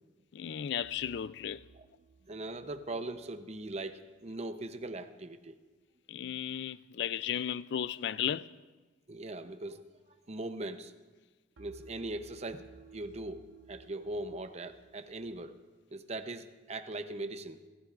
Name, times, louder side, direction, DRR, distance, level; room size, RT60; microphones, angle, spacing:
voice 1, 0.3-1.6 6.1-8.5, left 9 dB, 60° left, 0.3 m, -35 dB
sound 1, 0.8-3.9 11.6-15.5, right 5 dB, 80° right, 0.8 m, -57 dB
voice 2, 2.3-5.6 9.1-9.8 10.3-10.9 11.6-12.7 12.9-15.6 15.9-17.6, right 2 dB, 35° right, 0.7 m, -40 dB
30.0 x 13.0 x 2.5 m
head